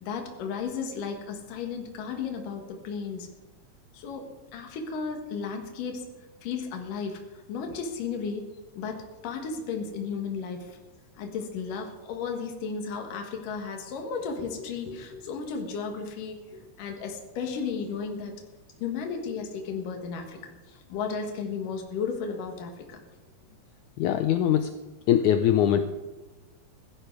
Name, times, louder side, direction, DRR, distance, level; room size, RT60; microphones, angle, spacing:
voice 1, 0.0-3.3 3.9-6.0 6.4-7.2 7.5-8.4 8.7-10.8 11.2-18.3 18.8-20.4 20.7-23.0, left 5 dB, 65° left, 3 dB, 3.2 m, -34 dB
voice 2, 24.0-24.7 25.1-25.8, left 10 dB, 85° left, 9 dB, 1.7 m, -22 dB
16.0 x 12.5 x 4.7 m, 1.1 s
omnidirectional pair, 4.2 m